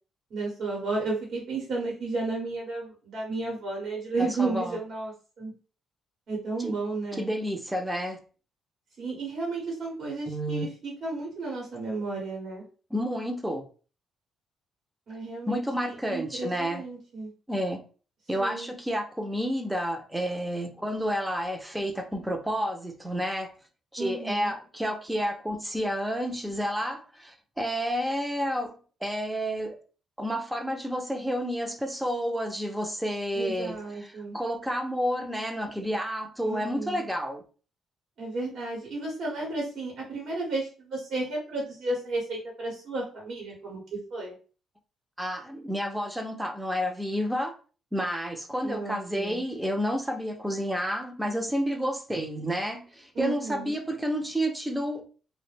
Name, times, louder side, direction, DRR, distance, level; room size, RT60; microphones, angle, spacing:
voice 1, 0.3-5.5 6.3-7.3 9.0-12.6 15.1-17.3 18.4-18.7 24.0-24.5 33.3-34.4 36.4-37.0 38.2-43.8 44.1-44.3 48.6-49.4 53.1-53.7, right 3 dB, 65° right, 1.0 m, -33 dB
voice 2, 4.2-4.8 6.6-6.7 7.1-8.2 10.3-10.7 12.9-13.6 15.5-16.9 17.5-17.8 18.3-23.5 23.9-29.8 30.2-37.4 45.2-47.5 47.9-55.1, equal, 5° right, 0.5 m, -30 dB
2.4 x 2.1 x 3.2 m
cardioid pair, 90°, 0 cm